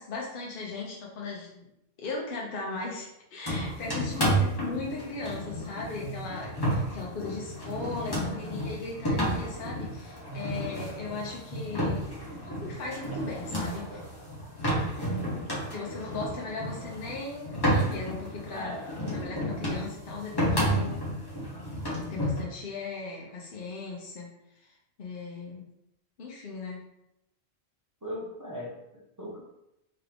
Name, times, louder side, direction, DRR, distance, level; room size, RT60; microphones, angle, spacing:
voice 1, 0.0-1.7 2.0-12.1 12.4-14.0 14.8-15.0 15.7-18.7 19.1-21.0 22.1-24.3 24.5-25.6 26.2-26.8, left 3 dB, 55° left, -3 dB, 0.8 m, -38 dB
sound 1, 3.5-22.4, right 1 dB, 20° left, 0.9 m, -31 dB
voice 2, 14.7-15.5 18.5-19.3 28.0-29.4, equal, 20° right, -4 dB, 0.6 m, -39 dB
3.6 x 2.9 x 3.4 m, 0.85 s
omnidirectional pair, 1.2 m